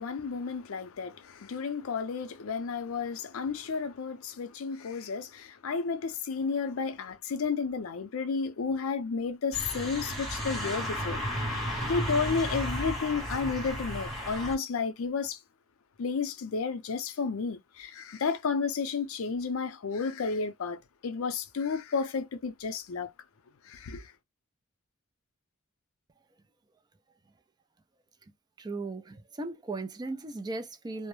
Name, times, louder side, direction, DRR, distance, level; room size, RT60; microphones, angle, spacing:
voice 1, 0.0-11.2 11.5-11.6 11.9-15.4 16.0-23.1 23.6-24.1, left 5 dB, 65° left, 0.5 m, -32 dB
sound 1, 9.5-14.6, equal, ahead, 1.0 m, -33 dB
voice 2, 28.6-31.1, right 3 dB, 20° right, 0.4 m, -37 dB
2.2 x 2.0 x 3.0 m
head